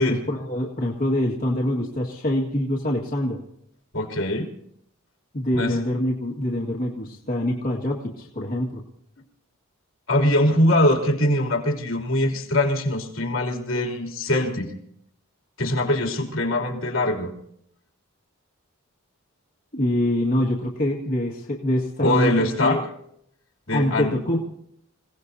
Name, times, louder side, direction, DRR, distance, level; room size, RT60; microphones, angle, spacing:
voice 1, 0.1-3.4 5.3-8.8 19.7-22.8 23.7-24.4, left 1 dB, 45° left, -4 dB, 1.9 m, -25 dB
voice 2, 3.9-4.5 5.5-5.8 10.1-14.7 15.6-17.3 22.0-22.8 23.7-24.1, left 1 dB, 75° left, 1 dB, 3.1 m, -22 dB
28.5 x 17.5 x 2.8 m, 0.72 s
head